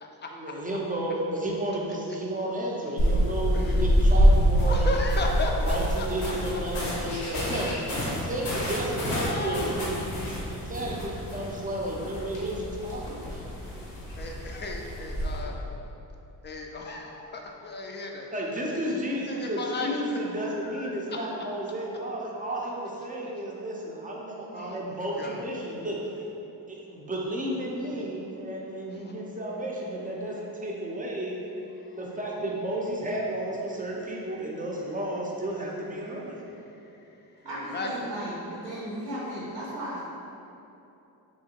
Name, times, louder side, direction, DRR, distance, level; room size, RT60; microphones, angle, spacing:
voice 1, 0.3-4.9 5.5-13.5 18.3-26.3 26.7-31.4 31.9-36.4, right 1 dB, 20° right, -3 dB, 0.6 m, -32 dB
sound 1, 3.0-15.4, equal, 90° left, 0.9 m, -26 dB
voice 2, 4.7-6.3 9.0-9.8 14.2-15.6 16.4-18.3 19.3-20.2 20.5-21.2 24.5-24.8 25.2-25.5 37.4-37.9, left 2 dB, 25° left, 1 dB, 0.4 m, -35 dB
voice 3, 37.4-40.0, right 1 dB, 85° right, -8 dB, 0.8 m, -35 dB
3.3 x 2.8 x 2.8 m, 2.9 s
supercardioid pair, 60°, 44 cm